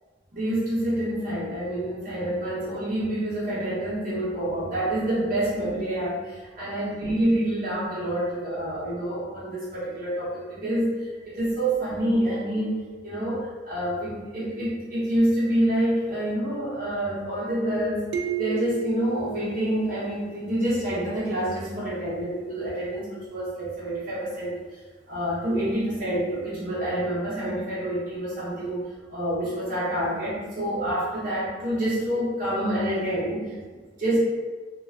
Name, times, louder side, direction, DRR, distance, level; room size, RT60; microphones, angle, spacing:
voice 1, 0.3-12.8 13.0-18.0 18.4-24.6 25.1-33.5 34.0-34.2, right 1 dB, 50° right, -8 dB, 0.9 m, -27 dB
sound 1, 18.1-20.7, right 7 dB, 65° right, 0.3 m, -33 dB
2.4 x 2.2 x 3.2 m, 1.4 s
head